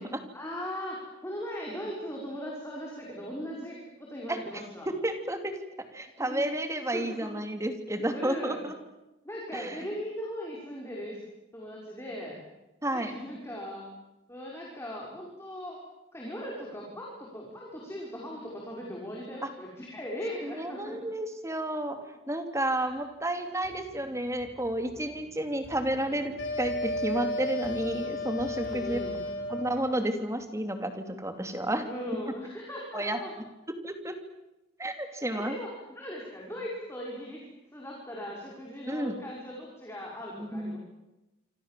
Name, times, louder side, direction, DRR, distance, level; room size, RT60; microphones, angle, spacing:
voice 1, 0.0-4.9 6.0-6.5 6.9-7.4 8.1-8.6 9.2-11.2 11.5-12.4 12.9-13.9 14.3-15.8 16.1-21.0 22.8-22.9 28.6-29.2 31.8-33.3 35.3-37.4 37.7-40.8, equal, 15° left, -3 dB, 5.6 m, -39 dB
voice 2, 4.9-5.6 5.9-8.7 9.5-9.8 12.8-13.1 19.4-19.5 20.4-22.0 22.3-29.0 29.5-31.8 32.9-33.2 33.8-34.2 34.8-35.6 38.9-39.1 40.4-40.8, right 1 dB, 15° right, 7 dB, 2.9 m, -31 dB
sound 1, 22.7-30.4, right 1 dB, 70° right, 3.9 m, -50 dB
sound 2, 26.4-29.9, left 1 dB, 65° left, 7.0 m, -33 dB
27.0 x 26.5 x 7.6 m, 0.99 s
head